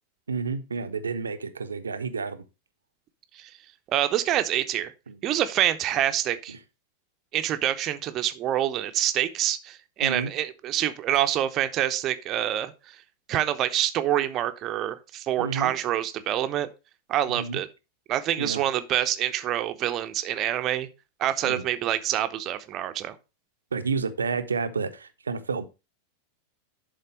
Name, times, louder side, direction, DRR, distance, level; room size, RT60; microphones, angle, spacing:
voice 1, 0.3-2.4 5.1-5.2 6.5-6.6 10.0-10.3 15.4-15.7 17.3-17.6 18.4-18.6 21.4-21.6 23.7-25.7, right 5 dB, 75° right, 0.9 m, -30 dB
voice 2, 3.9-4.9 5.2-6.5 7.3-13.0 13.3-16.7 17.1-17.7 18.1-20.9 21.2-23.2, right 12 dB, 35° right, 0.9 m, -26 dB
11.0 x 4.0 x 5.2 m
figure-of-eight pair, 90°, 0 cm